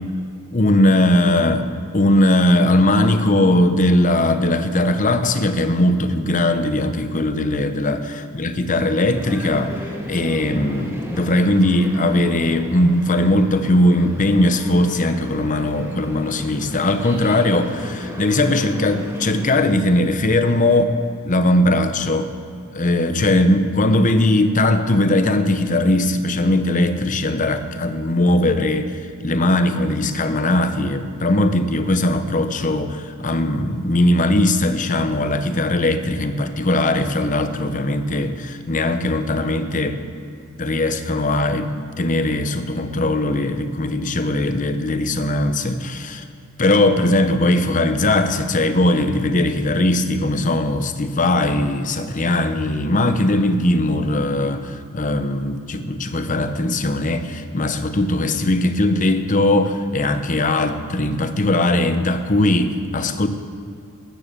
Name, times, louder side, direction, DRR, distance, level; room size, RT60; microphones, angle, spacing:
voice 1, 0.5-1.7 1.9-9.8 10.1-21.0 21.2-22.3 22.7-40.0 40.6-46.2 46.6-63.3, left 1 dB, 35° left, 9 dB, 0.8 m, -19 dB
sound 1, 9.1-19.5, equal, 10° right, 1.6 m, -34 dB
13.5 x 10.5 x 6.8 m, 2.5 s
head